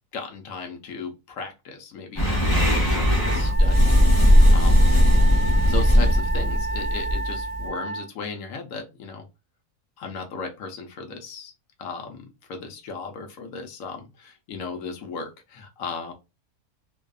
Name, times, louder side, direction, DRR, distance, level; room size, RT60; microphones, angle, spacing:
voice 1, 0.1-4.9 5.6-9.3 10.0-11.5 11.8-16.1, left 4 dB, 70° left, 3 dB, 1.0 m, -36 dB
sound 1, 2.2-7.7, equal, 20° left, 0.9 m, -18 dB
Wind instrument woodwind instrument, 3.2-8.1, right 3 dB, 65° right, 1.0 m, -32 dB
2.6 x 2.3 x 2.3 m, 0.26 s
omnidirectional pair, 1.6 m